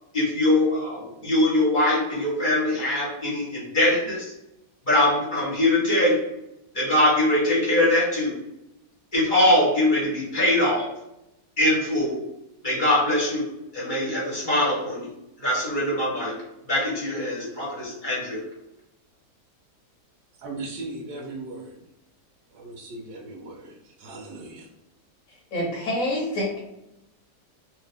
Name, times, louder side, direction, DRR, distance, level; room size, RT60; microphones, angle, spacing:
voice 1, 0.1-4.3 4.8-6.3 6.7-8.4 9.1-10.9 11.6-12.2 12.6-13.5 13.7-15.1 15.4-16.4 16.7-18.4, left 1 dB, 30° left, -7 dB, 1.3 m, -22 dB
voice 2, 20.3-21.8 22.5-24.7, right 2 dB, 75° right, 2 dB, 1.1 m, -38 dB
voice 3, 25.3-26.6, left 1 dB, 55° left, -3 dB, 1.2 m, -27 dB
2.8 x 2.8 x 3.3 m, 0.87 s
omnidirectional pair, 1.8 m